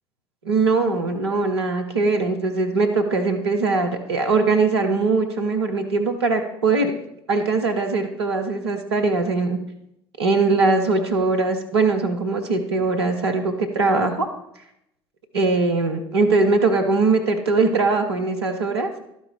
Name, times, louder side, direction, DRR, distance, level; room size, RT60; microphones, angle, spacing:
voice 1, 0.4-6.9 7.3-9.6 10.2-14.3 15.3-18.9, right 3 dB, 85° right, 4 dB, 0.7 m, -21 dB
12.0 x 4.7 x 4.2 m, 0.78 s
figure-of-eight pair, 55°, 13 cm